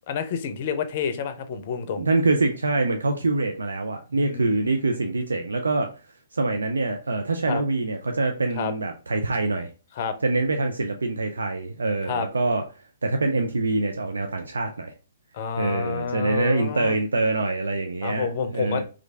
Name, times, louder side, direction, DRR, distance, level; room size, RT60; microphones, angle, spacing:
voice 1, 0.1-2.0 4.1-4.7 7.5-7.6 8.6-8.7 10.0-10.2 12.1-12.3 15.3-17.0 18.0-18.8, left 6 dB, 45° left, 0.5 m, -29 dB
voice 2, 1.9-5.9 6.3-9.7 10.2-12.6 13.0-14.9 15.6-18.8, right 3 dB, 80° right, 0.4 m, -25 dB
3.1 x 2.4 x 3.3 m
figure-of-eight pair, 125°, 0 cm